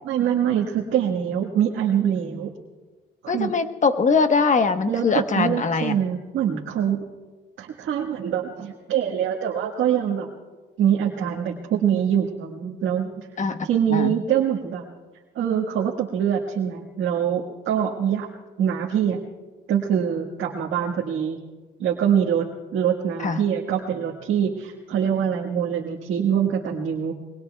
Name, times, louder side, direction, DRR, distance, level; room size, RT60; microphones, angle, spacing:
voice 1, 0.1-2.5 3.2-3.5 4.9-7.0 7.6-10.3 10.8-13.3 13.6-14.8 15.3-18.3 18.6-19.2 19.7-21.4 21.8-27.1, right 9 dB, 80° right, -1 dB, 1.6 m, -24 dB
voice 2, 3.3-5.9 13.4-14.1 23.2-23.4, left 4 dB, 40° left, 8 dB, 1.1 m, -22 dB
26.5 x 22.0 x 2.3 m, 1.3 s
cardioid pair, 90°, 20 cm